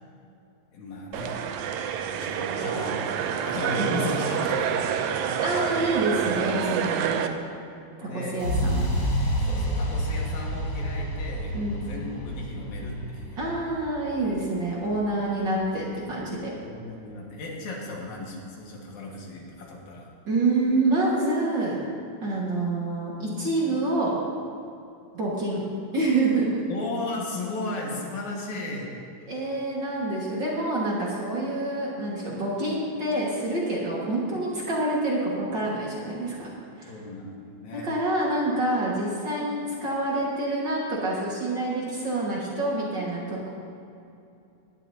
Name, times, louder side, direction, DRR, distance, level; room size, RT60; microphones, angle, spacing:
voice 1, 0.7-1.4 2.1-4.8 8.0-8.5 9.4-13.4 16.4-20.1 26.7-29.0 36.9-37.9, left 2 dB, 75° left, -2 dB, 3.1 m, -35 dB
sound 1, 1.1-7.3, right 8 dB, 80° right, 2.0 m, -27 dB
voice 2, 5.4-7.3 8.0-8.8 11.5-11.8 13.4-16.5 20.3-21.8 22.2-24.2 25.1-25.6 25.9-26.6 29.3-36.5 36.8-36.9 37.7-43.5, right 2 dB, 40° right, -5 dB, 2.1 m, -27 dB
sound 2, 8.4-16.3, equal, 35° left, 2.7 m, -30 dB
18.5 x 11.0 x 2.8 m, 2.7 s
omnidirectional pair, 3.5 m